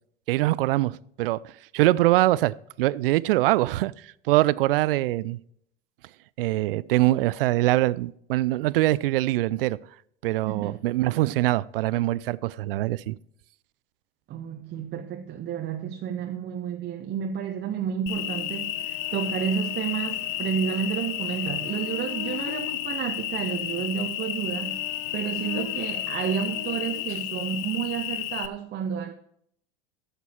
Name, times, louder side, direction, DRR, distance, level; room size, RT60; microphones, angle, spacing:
voice 1, 0.3-3.9 4.3-5.4 6.4-9.8 10.2-13.1, right 17 dB, 65° right, 0.4 m, -23 dB
voice 2, 10.5-10.8 14.3-29.1, right 8 dB, 35° right, 0.7 m, -31 dB
Cricket, 18.1-28.5, left 13 dB, 55° left, 0.7 m, -32 dB
12.0 x 6.8 x 4.4 m
hypercardioid pair, 85°, 31 cm